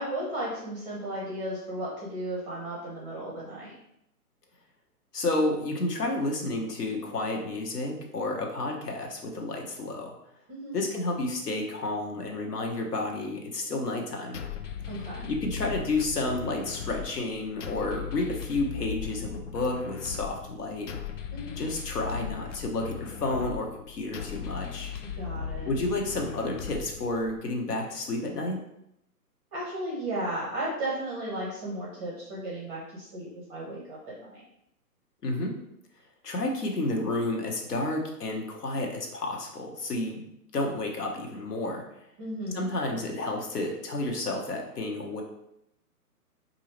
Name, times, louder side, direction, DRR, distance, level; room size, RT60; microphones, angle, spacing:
voice 1, 0.0-3.7 10.5-10.8 14.9-15.3 21.3-21.6 25.0-25.7 29.5-34.4 42.2-42.7, right 1 dB, 10° right, -5 dB, 0.6 m, -35 dB
voice 2, 5.1-10.2 10.7-14.4 15.3-20.9 21.6-24.9 25.7-28.6 35.2-35.5 36.2-40.2 40.5-41.8 42.5-45.2, left 2 dB, 75° left, 1 dB, 1.2 m, -31 dB
sound 1, 14.3-27.4, left 8 dB, 50° left, 0.5 m, -38 dB
4.7 x 2.7 x 3.1 m, 0.79 s
hypercardioid pair, 140°, 47 cm